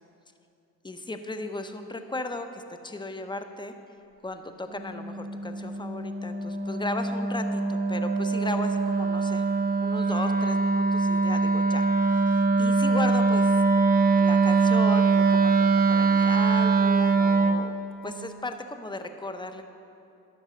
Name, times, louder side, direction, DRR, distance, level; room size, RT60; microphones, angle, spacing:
voice 1, 0.8-3.7 4.2-9.4 9.8-13.5 14.1-17.7 18.0-19.6, left 2 dB, 15° left, 8 dB, 0.7 m, -36 dB
Wind instrument woodwind instrument, 4.7-17.6, right 4 dB, 25° right, 0.7 m, -23 dB
12.0 x 5.4 x 5.1 m, 2.7 s
supercardioid pair, 65°, 35 cm